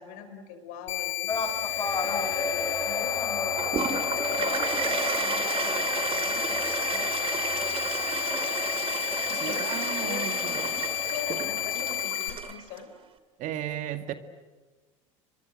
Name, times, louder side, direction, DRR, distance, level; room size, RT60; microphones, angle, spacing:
voice 1, 0.0-3.6 3.8-4.0 4.4-7.1 8.3-8.7 9.3-10.7 11.1-12.9, left 7 dB, 65° left, 8 dB, 5.5 m, -41 dB
sound 1, 0.9-12.3, left 16 dB, 80° left, 4.6 m, -31 dB
sound 2, 1.3-12.0, left 2 dB, 25° left, 7.1 m, -35 dB
Toilet flush, 3.6-12.8, right 7 dB, 35° right, 2.4 m, -32 dB
voice 2, 9.3-10.6 13.4-14.1, right 11 dB, 55° right, 9 dB, 2.1 m, -35 dB
30.0 x 24.0 x 8.0 m, 1.3 s
hypercardioid pair, 75°, 16 cm